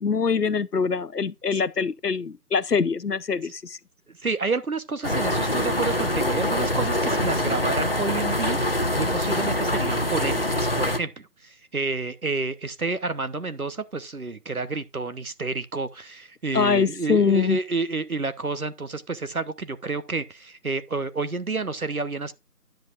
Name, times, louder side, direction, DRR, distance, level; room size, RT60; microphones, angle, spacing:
voice 1, 0.0-3.8 16.5-17.6, left 5 dB, 80° left, 0.8 m, -23 dB
voice 2, 4.2-22.3, right 3 dB, 65° right, 1.1 m, -30 dB
sound 1, 5.0-11.0, left 1 dB, 35° left, 1.0 m, -24 dB
10.5 x 7.8 x 2.5 m
figure-of-eight pair, 170°, 47 cm